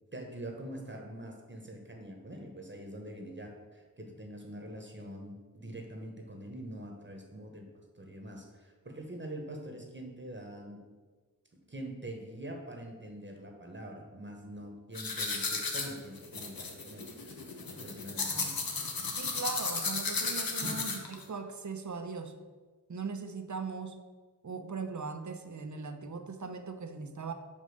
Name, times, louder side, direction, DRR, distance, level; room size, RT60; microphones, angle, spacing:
voice 1, 0.1-7.6 8.0-10.8 11.7-18.6 20.6-20.8, right 1 dB, 35° right, 2 dB, 1.2 m, -44 dB
sound 1, 15.0-21.2, left 4 dB, 85° left, 1.0 m, -34 dB
voice 2, 18.3-18.6 19.2-22.3 22.9-24.0 24.4-27.3, right 4 dB, 55° right, 7 dB, 0.8 m, -39 dB
5.3 x 5.3 x 6.4 m, 1.4 s
wide cardioid pair, 65°, 34 cm